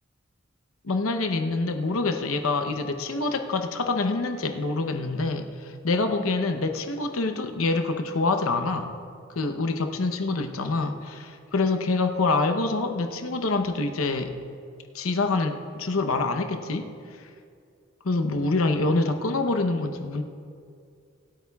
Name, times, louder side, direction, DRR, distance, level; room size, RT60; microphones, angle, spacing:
voice 1, 0.8-8.9 9.4-14.3 14.9-16.9 18.0-20.2, left 3 dB, 80° left, 7 dB, 0.8 m, -26 dB
25.5 x 8.6 x 2.3 m, 2.3 s
head